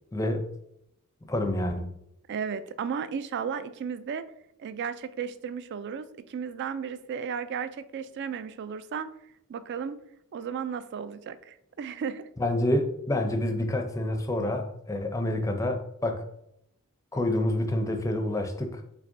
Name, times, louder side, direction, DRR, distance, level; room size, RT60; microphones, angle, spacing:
voice 1, 0.1-0.5 1.2-1.9 12.4-16.2 17.1-18.8, left 1 dB, 15° left, 5 dB, 0.5 m, -28 dB
voice 2, 2.3-4.2 4.6-9.1 9.5-10.0 10.3-12.2, right 6 dB, 50° right, 13 dB, 0.3 m, -34 dB
6.3 x 3.3 x 2.6 m, 0.77 s
head